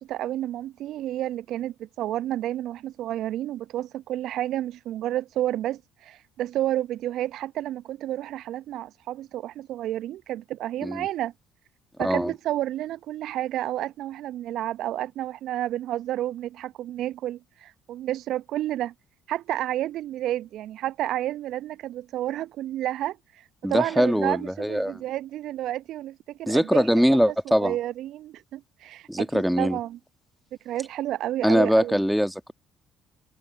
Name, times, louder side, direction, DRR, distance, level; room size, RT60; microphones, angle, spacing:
voice 1, 0.0-11.3 12.0-18.9 19.3-29.1 29.3-30.0 30.6-32.0, right 13 dB, 60° right, 0.8 m, -30 dB
voice 2, 12.0-12.3 23.6-25.0 26.5-27.8 29.1-29.8 31.4-32.5, equal, ahead, 1.8 m, -22 dB
hypercardioid pair, 50°, 0 cm